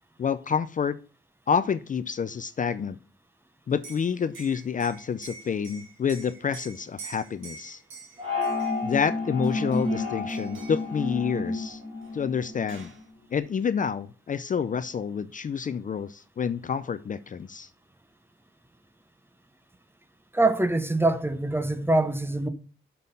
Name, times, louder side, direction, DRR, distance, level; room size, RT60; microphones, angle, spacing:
voice 1, 0.2-1.0 1.5-3.0 3.7-7.8 8.8-11.8 12.1-12.9 13.3-17.7, left 6 dB, 40° left, 0.4 m, -28 dB
Liquid, 3.7-9.0 9.4-10.0 10.3-10.9 12.0-12.1 12.4-13.0, right 5 dB, 70° right, 2.1 m, -46 dB
sound 1, 8.2-12.8, left 3 dB, 25° right, 2.4 m, -30 dB
voice 2, 20.3-22.5, right 2 dB, 10° right, 0.7 m, -24 dB
6.3 x 5.5 x 5.4 m
wide cardioid pair, 110°, 21 cm